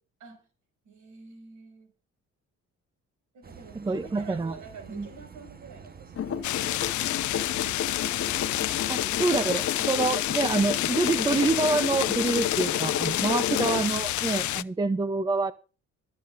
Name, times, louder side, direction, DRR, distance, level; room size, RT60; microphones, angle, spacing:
voice 1, 0.8-1.9 3.3-6.6 7.5-7.7 14.4-14.7, right 5 dB, 75° right, 5.5 m, -49 dB
sound 1, 3.4-9.6, right 6 dB, 30° right, 1.1 m, -47 dB
voice 2, 3.8-4.5 4.9-5.1 8.9-15.5, right 3 dB, 15° right, 0.6 m, -26 dB
sound 2, 6.2-14.2, left 9 dB, 50° left, 1.0 m, -32 dB
sound 3, 6.4-14.6, left 15 dB, 70° left, 0.5 m, -29 dB
25.5 x 8.6 x 2.5 m
cardioid pair, 90°, 30 cm